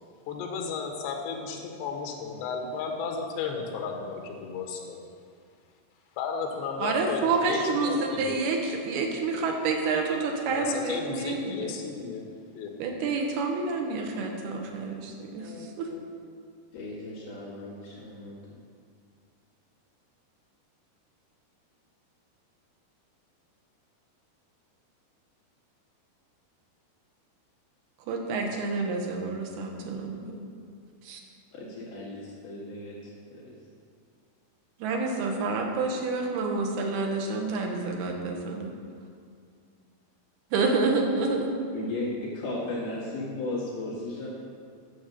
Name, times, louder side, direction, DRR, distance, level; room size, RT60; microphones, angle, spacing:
voice 1, 0.3-5.0 6.2-8.4 10.5-12.7 15.4-16.0, left 5 dB, 85° left, 2 dB, 3.4 m, -34 dB
voice 2, 6.8-11.7 12.8-15.5 15.8-15.9 28.1-30.4 31.1-31.2 34.8-38.7 40.5-41.5, right 3 dB, 75° right, 1 dB, 3.0 m, -28 dB
voice 3, 16.7-18.6 31.5-33.0 33.3-33.6 41.7-44.3, left 2 dB, 65° left, -6 dB, 3.6 m, -35 dB
10.5 x 7.1 x 6.7 m, 2.2 s
omnidirectional pair, 4.9 m